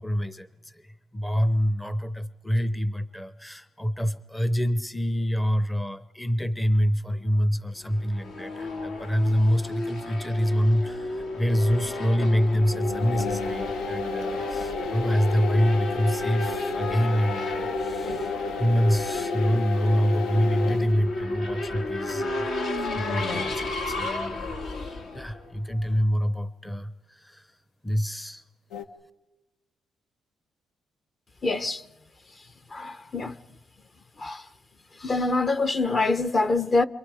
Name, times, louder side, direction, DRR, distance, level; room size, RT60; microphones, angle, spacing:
voice 1, 0.0-27.6 27.8-28.4, equal, 10° left, 0.7 m, -26 dB
Race car auto racing / Accelerating revving vroom, 7.9-26.0, left 2 dB, 70° left, 2.0 m, -32 dB
sound 1, 12.7-21.0 22.1-22.2 28.7-28.8, left 6 dB, 90° left, 1.2 m, -34 dB
voice 2, 31.4-31.8 32.7-33.3 34.2-34.4 35.0-36.8, left 3 dB, 35° left, 0.9 m, -25 dB
28.5 x 27.0 x 4.9 m
cardioid pair, 90°, 0 cm